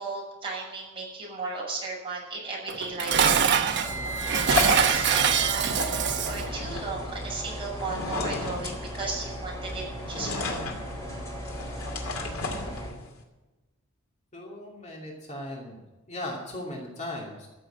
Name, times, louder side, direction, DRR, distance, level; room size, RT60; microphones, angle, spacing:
voice 1, 0.0-3.6 3.8-5.8 6.3-10.6, right 3 dB, 25° right, -3 dB, 6.2 m, -35 dB
Dishes pots and pans, 2.7-6.5, right 7 dB, 55° right, 1.1 m, -24 dB
sound 1, 3.5-13.2, left 3 dB, 85° left, 2.5 m, -34 dB
sound 2, 3.8-12.9, equal, 15° left, 5.8 m, -36 dB
voice 2, 14.3-17.5, left 1 dB, 35° left, -2 dB, 2.7 m, -38 dB
14.5 x 7.6 x 8.9 m, 1.1 s
head